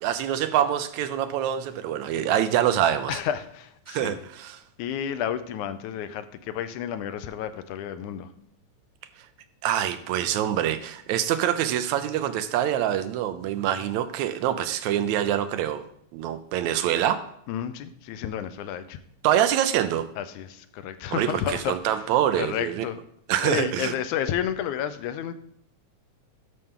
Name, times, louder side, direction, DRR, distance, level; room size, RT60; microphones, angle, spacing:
voice 1, 0.0-3.2 3.9-4.6 9.6-15.8 16.1-17.2 19.2-20.1 21.1-22.9 23.3-23.9, right 11 dB, 80° right, 11 dB, 1.9 m, -25 dB
voice 2, 3.1-4.2 4.8-8.3 17.5-19.0 20.2-22.1 22.4-23.0 23.4-25.3, left 10 dB, 85° left, 11 dB, 2.1 m, -31 dB
11.0 x 6.7 x 3.7 m, 0.70 s
omnidirectional pair, 3.4 m